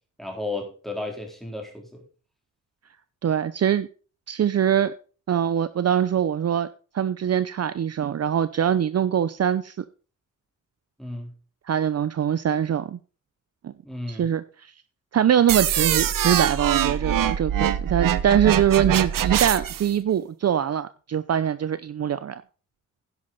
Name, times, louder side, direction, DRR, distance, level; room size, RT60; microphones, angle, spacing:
voice 1, 0.2-2.0 11.0-11.3 13.8-14.3, left 2 dB, ahead, 2 dB, 3.9 m, -33 dB
voice 2, 3.2-3.9 4.3-4.9 5.3-6.7 6.9-9.8 11.7-13.0 13.6-13.7 14.1-14.4 15.1-22.4, right 9 dB, 50° right, 14 dB, 0.6 m, -23 dB
sound 1, 15.5-19.9, right 10 dB, 80° right, 0.9 m, -23 dB
10.5 x 10.5 x 4.1 m, 0.37 s
wide cardioid pair, 115°, 33 cm